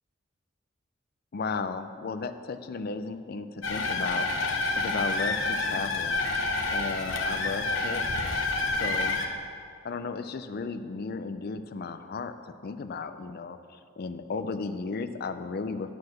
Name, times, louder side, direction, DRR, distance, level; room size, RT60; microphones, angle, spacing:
voice 1, 1.3-6.2 6.7-8.1 8.8-9.2 9.8-16.0, left 4 dB, 50° left, 10 dB, 0.4 m, -35 dB
Kettle Boiling Whistle, 3.6-9.3, left 3 dB, 90° left, 0.8 m, -28 dB
9.4 x 4.7 x 6.3 m, 2.3 s
head